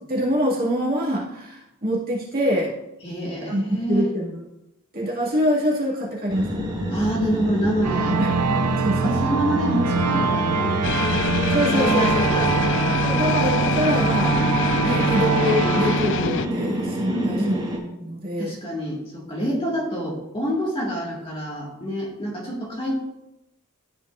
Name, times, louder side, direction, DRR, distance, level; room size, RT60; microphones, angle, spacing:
voice 1, 0.0-2.7 3.5-4.4 4.9-6.5 8.2-8.5 8.8-9.1 11.5-12.5 13.0-14.4 14.8-17.6 17.9-18.5, equal, 40° right, -5 dB, 2.1 m, -25 dB
voice 2, 3.0-4.1 6.9-8.2 9.0-10.9 11.7-13.0 17.1-17.6 18.4-22.9, equal, 25° left, -4 dB, 1.9 m, -26 dB
sound 1, 6.3-17.8, equal, 20° right, 1.5 m, -28 dB
sound 2, 7.8-17.2, right 5 dB, 80° right, 0.4 m, -24 dB
sound 3, 10.8-16.5, left 7 dB, 55° left, 0.3 m, -26 dB
12.5 x 5.2 x 2.5 m, 0.90 s
head